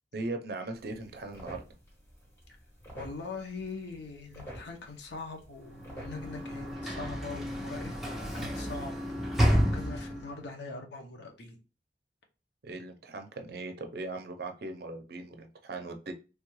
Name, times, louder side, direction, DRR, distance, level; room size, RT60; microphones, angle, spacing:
voice 1, 0.1-1.6 12.6-16.1, right 2 dB, 60° right, 0.5 m, -39 dB
sound 1, 0.7-6.7, right 1 dB, 15° left, 1.3 m, -49 dB
voice 2, 2.9-7.9 8.3-9.0 9.3-9.5 9.7-11.6, left 4 dB, 75° left, 0.7 m, -42 dB
Sliding door / Slam, 5.7-10.4, equal, ahead, 0.7 m, -31 dB
3.3 x 2.3 x 3.0 m
head